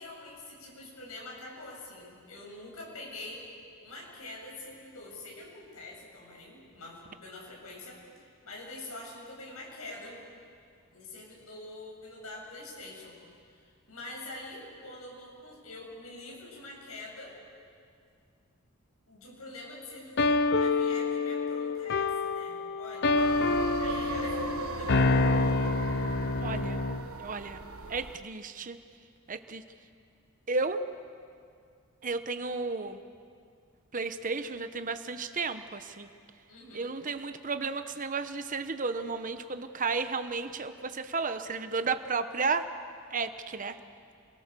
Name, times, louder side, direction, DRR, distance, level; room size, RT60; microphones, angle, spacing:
voice 1, 0.0-3.5 3.8-8.0 8.4-10.2 10.9-13.2 13.5-13.6 13.9-17.4 19.1-23.3 23.8-24.4 24.8-25.3 36.5-37.0, left 2 dB, 85° left, -2 dB, 7.9 m, -45 dB
sound 1, 20.2-27.1, left 3 dB, 55° left, 0.7 m, -27 dB
sound 2, 23.2-28.2, right 3 dB, 85° right, 1.3 m, -37 dB
voice 2, 26.4-26.8 27.1-27.6 27.9-28.8 29.3-29.6 30.5-30.8 32.0-33.0 33.9-36.1 36.7-42.7 43.1-43.8, right 4 dB, 40° right, 9 dB, 1.0 m, -33 dB
29.5 x 22.5 x 6.9 m, 2.3 s
head